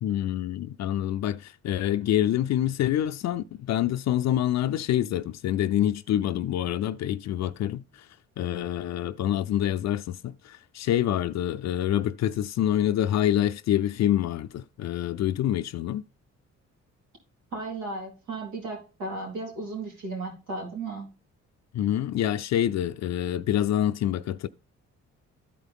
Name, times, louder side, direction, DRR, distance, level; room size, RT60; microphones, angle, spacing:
voice 1, 0.0-8.1 8.4-16.0 21.7-24.5, left 11 dB, 60° left, 0.5 m, -26 dB
voice 2, 17.5-21.1, right 3 dB, 85° right, 3.7 m, -35 dB
13.0 x 4.6 x 3.5 m
cardioid pair, 90°, 30 cm